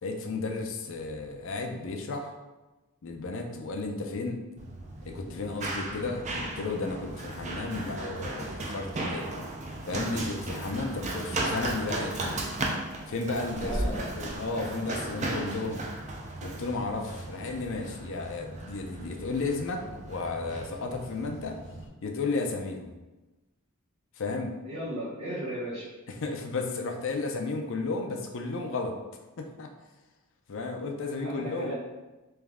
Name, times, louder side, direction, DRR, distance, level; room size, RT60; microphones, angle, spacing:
voice 1, 0.0-2.3 3.0-4.4 5.0-9.3 9.9-12.4 13.1-15.8 16.4-21.6 22.0-22.9 24.2-24.6 26.2-29.0 29.4-29.7 30.5-31.7, left 3 dB, 60° left, 3 dB, 0.5 m, -33 dB
Run, 4.6-21.9, right 2 dB, 30° right, 0.5 m, -36 dB
voice 2, 13.6-14.1 24.6-25.9 31.2-31.7, right 1 dB, 85° right, -9 dB, 1.2 m, -35 dB
3.5 x 3.1 x 3.5 m, 1.1 s
head